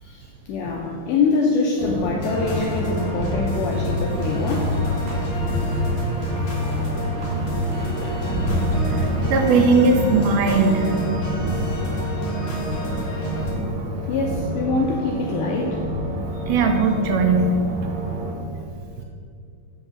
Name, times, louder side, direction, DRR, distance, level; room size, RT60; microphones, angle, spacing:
voice 1, 0.0-4.7 5.6-5.7 14.1-15.8 16.3-16.5, left 4 dB, 80° left, -1 dB, 1.9 m, -24 dB
sound 1, 1.8-18.3, equal, 65° right, 2.0 m, -26 dB
sound 2, 2.2-13.5, equal, 55° left, 1.5 m, -32 dB
sound 3, 3.9-9.2, right 1 dB, 45° right, 1.7 m, -40 dB
voice 2, 8.9-10.8 16.5-17.5 17.8-17.9, right 4 dB, 80° right, 4 dB, 2.6 m, -19 dB
6.4 x 4.8 x 6.8 m, 2.4 s
omnidirectional pair, 4.4 m